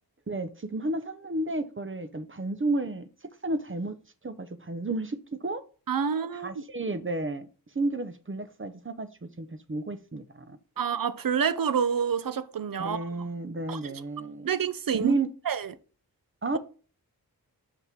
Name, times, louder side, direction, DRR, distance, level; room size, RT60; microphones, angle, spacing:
voice 1, 0.3-4.0 4.2-5.6 6.3-7.5 7.7-10.6 12.8-14.5 14.9-15.3 16.4-16.6, right 2 dB, 35° right, 0.9 m, -32 dB
voice 2, 5.9-6.6 10.8-13.0 13.7-13.9 14.4-15.1 15.5-15.7, right 7 dB, 65° right, 0.7 m, -28 dB
6.0 x 5.4 x 3.6 m
cardioid pair, 55°, 37 cm